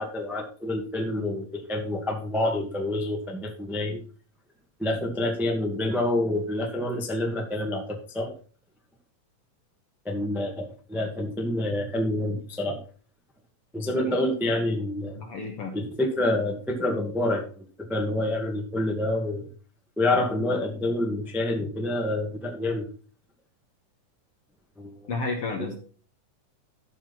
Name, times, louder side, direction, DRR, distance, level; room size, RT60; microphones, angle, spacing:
voice 1, 0.0-4.0 4.8-8.3 10.0-12.8 13.7-15.2 15.7-19.5 20.0-22.9 24.8-25.1 25.6-25.8, left 1 dB, ahead, 2 dB, 0.7 m, -27 dB
voice 2, 15.1-15.8 25.1-25.8, left 3 dB, 60° left, 3 dB, 1.6 m, -32 dB
14.0 x 5.8 x 4.2 m, 0.39 s
omnidirectional pair, 4.0 m